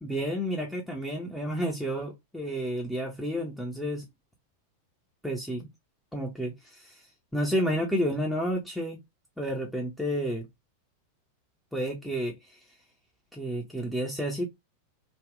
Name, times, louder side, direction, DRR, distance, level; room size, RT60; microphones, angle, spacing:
voice 1, 0.0-4.1 5.2-5.7 6.1-7.1 7.3-9.0 9.4-10.5 11.7-12.6 13.3-14.5, equal, ahead, 0.9 m, -31 dB
3.5 x 2.4 x 3.6 m
figure-of-eight pair, 90°, 0 cm